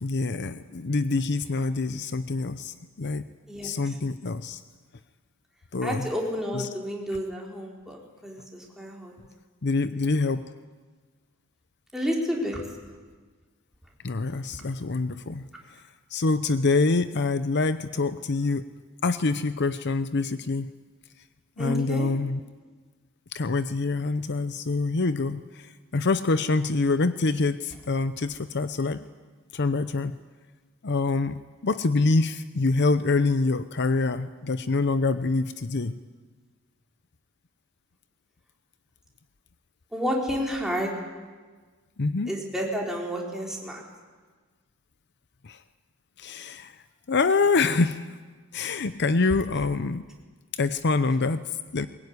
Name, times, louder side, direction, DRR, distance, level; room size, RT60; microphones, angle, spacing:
voice 1, 0.0-3.3 3.6-4.6 5.7-6.1 6.5-6.7 9.6-10.4 14.0-15.8 16.1-18.7 19.0-20.7 21.6-22.4 23.3-29.0 29.5-30.2 30.8-36.0 42.0-42.3 45.4-45.6 46.2-46.8 47.1-48.1 48.5-50.0 50.5-51.9, left 3 dB, 55° left, 12 dB, 0.7 m, -26 dB
voice 2, 5.8-9.1 11.9-12.6 21.6-22.1 39.9-40.9 42.3-43.8, equal, ahead, -2 dB, 4.4 m, -30 dB
21.5 x 21.5 x 9.7 m, 1.4 s
head